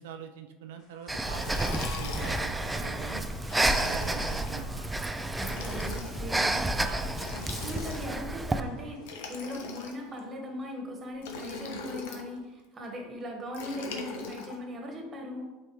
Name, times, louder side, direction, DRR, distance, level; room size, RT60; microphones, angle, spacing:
voice 1, 0.0-3.2 3.7-4.9 5.5-6.0 6.8-7.4, right 7 dB, 90° right, 6 dB, 0.4 m, -44 dB
sound 1, 0.8-10.1, left 2 dB, 65° left, 2.1 m, -51 dB
Liquid, 1.1-2.6 3.4-4.5 5.3-6.2 7.1-8.3 9.0-10.2 11.2-12.3 13.5-14.6, left 4 dB, 85° left, 1.0 m, -41 dB
Breathing, 1.1-8.6, right 2 dB, 10° right, 0.4 m, -30 dB
voice 2, 5.7-6.6 7.6-15.5, left 1 dB, 25° right, 2 dB, 1.4 m, -39 dB
8.0 x 4.3 x 3.1 m, 1.2 s
supercardioid pair, 130°, 0 cm